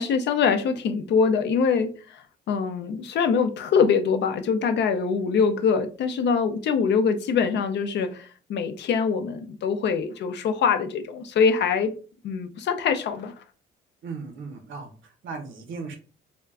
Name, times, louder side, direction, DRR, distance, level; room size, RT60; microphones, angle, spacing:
voice 1, 0.0-11.9 12.2-13.3, left 6 dB, 60° left, 0.4 m, -24 dB
voice 2, 14.0-16.0, right 4 dB, 75° right, 0.8 m, -37 dB
2.3 x 2.1 x 3.4 m
cardioid pair, 90°, 20 cm